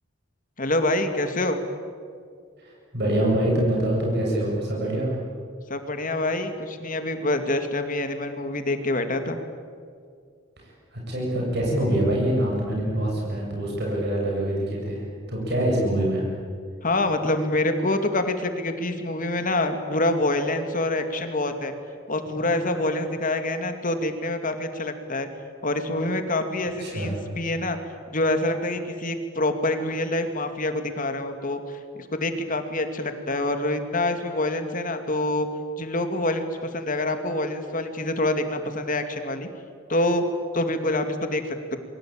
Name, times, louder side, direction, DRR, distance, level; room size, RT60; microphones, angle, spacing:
voice 1, 0.6-1.6 5.7-9.4 16.8-21.7 22.1-25.3 25.6-27.8 28.1-35.5 35.8-39.5 39.9-40.2 40.5-41.8, left 2 dB, 45° left, 7 dB, 2.4 m, -26 dB
voice 2, 2.6-5.1 10.6-16.3 22.4-22.5 26.8-27.1, right 1 dB, 55° right, -2 dB, 7.3 m, -25 dB
28.5 x 23.0 x 8.9 m, 2.2 s
head